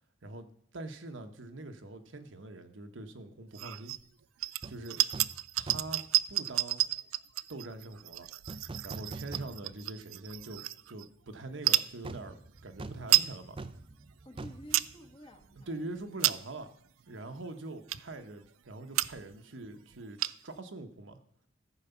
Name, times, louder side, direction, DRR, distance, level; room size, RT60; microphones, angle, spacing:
voice 1, 0.7-3.9 4.7-5.0 5.6-6.0 6.3-6.8 7.5-8.3 8.8-13.6 15.7-16.7 17.1-21.2, right 2 dB, 65° right, 6 dB, 1.0 m, -43 dB
sound 1, 3.5-4.0 4.4-11.1 11.6-11.9 12.6-12.7 12.9-13.3 13.8-13.9 14.4-14.9 15.4-15.6 16.0-16.6 17.2-17.3 17.9-18.2 18.7-18.8 18.9-19.4 19.6-19.7 19.9-20.6, right 16 dB, 90° right, 0.4 m, -31 dB
sound 2, 4.6-4.8 5.1-5.4 5.7-6.1 8.5-9.9 10.3-10.4 12.0-15.7 16.0-16.1, right 3 dB, 25° right, 0.5 m, -44 dB
voice 2, 14.2-16.2, equal, 25° left, 4 dB, 1.2 m, -52 dB
14.0 x 4.9 x 6.9 m, 0.64 s
head